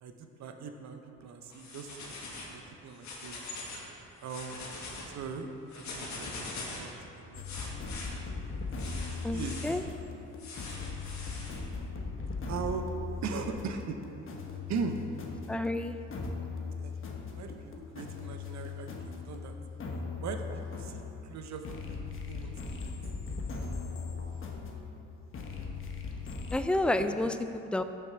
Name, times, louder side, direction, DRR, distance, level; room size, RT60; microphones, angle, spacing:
voice 1, 0.0-2.2 2.4-3.4 4.2-5.5 5.7-7.9 8.9-9.7 12.4-12.9 13.2-14.0 14.7-15.0 16.8-19.5 20.2-22.9 27.0-27.1, right 5 dB, 65° right, 6 dB, 0.8 m, -40 dB
sound 1, 1.5-2.5 2.9-3.9 4.2-5.1 5.7-6.9 7.4-8.1 8.8-9.7 10.4-11.6, left 3 dB, 65° left, 1.8 m, -42 dB
sound 2, 7.3-26.6, left 4 dB, 45° left, 1.1 m, -39 dB
voice 2, 9.2-9.8 15.5-15.9 26.5-27.8, left 1 dB, 5° left, 9 dB, 0.3 m, -30 dB
7.1 x 5.9 x 5.7 m, 2.8 s
cardioid pair, 90°, 30 cm